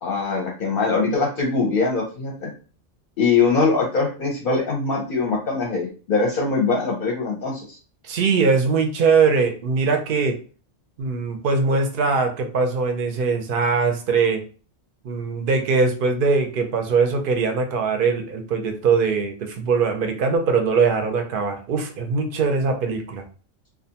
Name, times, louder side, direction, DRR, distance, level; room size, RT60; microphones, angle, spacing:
voice 1, 0.0-2.5 3.2-7.8, left 4 dB, 55° left, -1 dB, 0.6 m, -22 dB
voice 2, 8.0-10.4 11.0-14.4 15.0-23.2, right 5 dB, 60° right, 5 dB, 0.6 m, -21 dB
2.4 x 2.2 x 2.7 m, 0.38 s
omnidirectional pair, 1.3 m